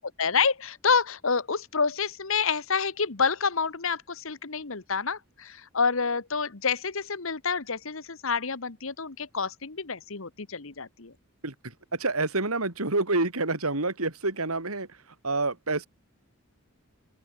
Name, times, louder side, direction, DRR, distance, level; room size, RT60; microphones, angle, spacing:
voice 1, 0.2-11.1, left 5 dB, 70° left, 1.3 m, -28 dB
voice 2, 11.4-14.9 15.2-15.9, right 3 dB, 90° right, 3.5 m, -28 dB
open air
head